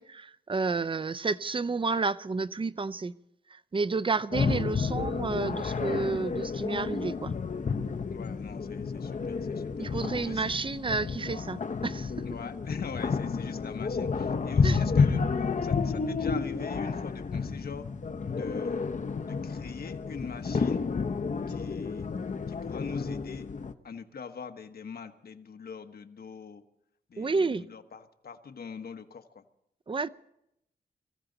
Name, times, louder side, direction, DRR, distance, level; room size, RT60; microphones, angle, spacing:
voice 1, 0.0-3.1 3.5-7.3 9.8-12.3 14.6-14.8 27.2-27.6 29.9-30.1, right 4 dB, 30° right, 0.6 m, -30 dB
sound 1, 4.3-23.7, left 5 dB, 45° left, 0.9 m, -30 dB
voice 2, 8.1-10.5 12.2-15.2 15.6-17.9 18.3-18.8 19.2-20.8 21.5-22.1 22.5-23.5 23.8-26.6 27.1-29.4, left 6 dB, 65° left, 1.2 m, -43 dB
24.0 x 15.0 x 4.0 m
wide cardioid pair, 85°, 17 cm